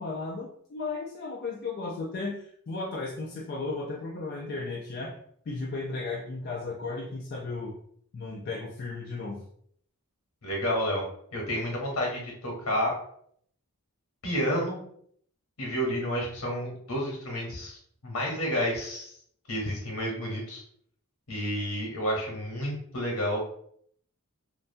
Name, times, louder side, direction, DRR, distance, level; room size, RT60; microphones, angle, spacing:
voice 1, 0.0-5.2 5.5-7.7 8.1-9.4, left 3 dB, 45° left, -2 dB, 0.3 m, -35 dB
voice 2, 10.4-11.0 11.3-13.0 14.2-14.8 15.6-17.8 18.0-19.1 19.5-20.6 21.3-23.4, equal, 70° left, -1 dB, 0.9 m, -30 dB
2.5 x 2.1 x 2.6 m, 0.65 s
head